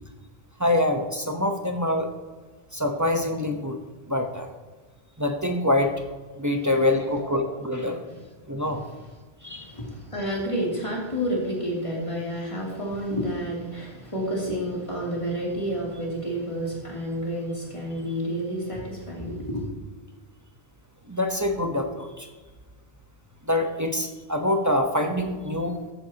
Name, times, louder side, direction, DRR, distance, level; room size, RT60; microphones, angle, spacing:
voice 1, 0.6-2.1 2.7-3.8 4.1-4.5 5.2-5.9 6.4-8.0 8.5-8.8 9.4-9.7 21.1-22.3 23.4-25.7, left 1 dB, 20° right, 3 dB, 0.9 m, -25 dB
voice 2, 7.0-7.3 8.1-8.2 9.4-19.7, equal, 30° left, -4 dB, 3.0 m, -30 dB
14.5 x 10.0 x 2.9 m, 1.3 s
omnidirectional pair, 1.1 m